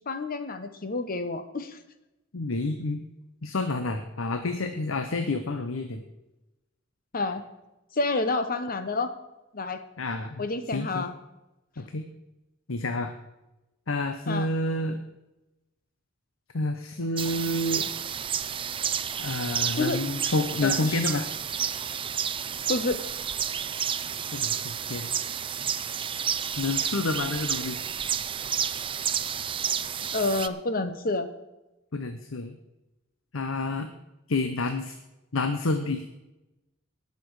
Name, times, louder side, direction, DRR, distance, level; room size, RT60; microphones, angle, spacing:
voice 1, 0.1-1.8 7.1-7.4 7.9-9.1 9.5-9.8 10.4-11.1 14.3-14.5 19.8-20.0 20.6-21.0 22.7-23.0 30.1-31.3, left 3 dB, 45° left, 10 dB, 1.1 m, -29 dB
voice 2, 2.3-3.1 3.4-6.0 10.0-10.4 10.7-11.1 11.8-12.0 12.7-13.1 13.9-15.0 16.5-17.9 19.2-21.2 24.3-25.1 26.6-27.8 31.9-32.5 33.3-33.9 34.3-35.0 35.3-36.1, left 2 dB, 90° left, 7 dB, 0.9 m, -29 dB
sound 1, 17.2-30.5, right 8 dB, 25° right, 0.5 m, -30 dB
19.5 x 6.9 x 4.8 m, 0.97 s
head